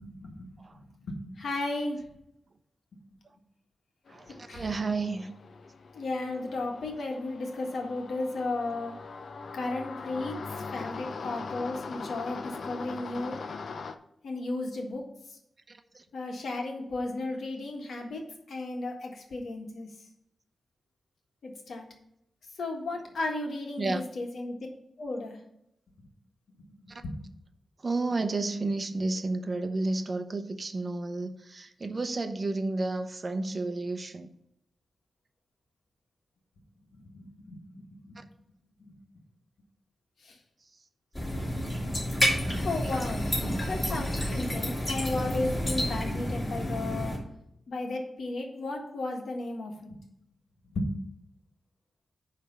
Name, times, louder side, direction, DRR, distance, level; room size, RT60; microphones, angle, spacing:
voice 1, 0.0-0.5 0.7-2.0 4.5-4.8 5.9-9.0 9.5-10.4 10.7-13.4 14.2-15.1 16.1-18.2 18.5-19.9 21.4-21.8 22.6-24.5 25.0-25.4 26.8-27.1 36.9-38.2 38.9-39.0 40.2-40.3 42.5-43.2 43.6-47.2 47.7-50.0 50.7-50.9, left 2 dB, 80° left, 1.6 m, -34 dB
sound 1, 4.1-13.9, left 4 dB, 60° left, 0.6 m, -41 dB
voice 2, 4.5-5.3 15.7-16.0 23.8-24.0 26.9-27.0 27.8-34.3, right 3 dB, 35° right, 0.7 m, -31 dB
sound 2, 41.1-47.2, equal, 20° left, 3.0 m, -30 dB
10.0 x 3.4 x 6.8 m
wide cardioid pair, 125°, 0 cm